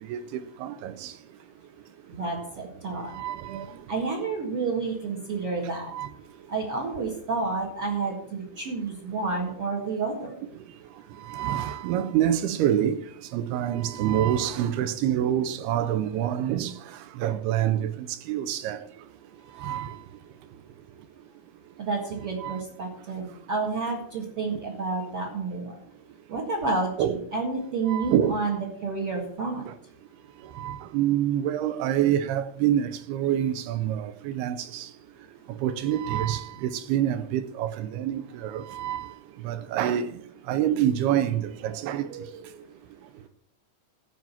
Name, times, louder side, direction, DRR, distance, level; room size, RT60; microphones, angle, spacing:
voice 1, 0.6-1.1 3.1-3.7 5.9-6.1 11.3-13.0 13.3-16.7 17.2-17.9 18.3-18.8 19.6-20.0 22.4-22.6 27.0-27.2 27.9-28.4 30.6-34.9 35.6-39.1 39.4-40.1 40.5-42.1, right 11 dB, 80° right, 2.4 m, -26 dB
voice 2, 2.1-3.1 3.9-5.9 6.5-10.4 21.8-25.8 26.3-29.6 42.1-42.6, right 4 dB, 50° right, 1.8 m, -30 dB
15.5 x 5.1 x 7.2 m
omnidirectional pair, 5.2 m